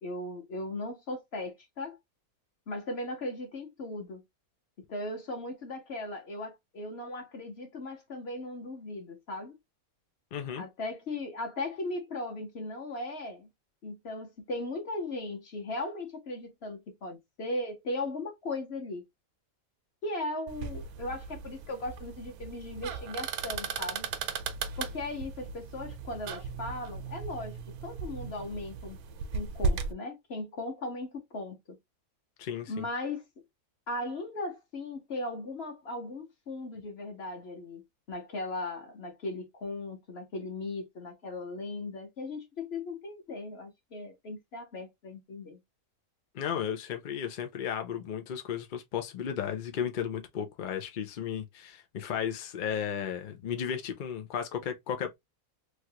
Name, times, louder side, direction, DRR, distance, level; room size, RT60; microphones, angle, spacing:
voice 1, 0.0-2.0 2.7-4.2 4.9-9.5 10.6-13.5 13.8-19.0 20.0-24.1 24.8-29.0 29.3-31.6 32.7-33.2 33.9-45.6, left 2 dB, 50° left, 1.2 m, -37 dB
voice 2, 10.3-10.6 32.4-32.9 46.3-55.1, left 8 dB, 75° left, 0.4 m, -34 dB
sound 1, 20.5-29.9, right 4 dB, 85° right, 1.1 m, -36 dB
3.2 x 2.4 x 2.8 m
omnidirectional pair, 1.5 m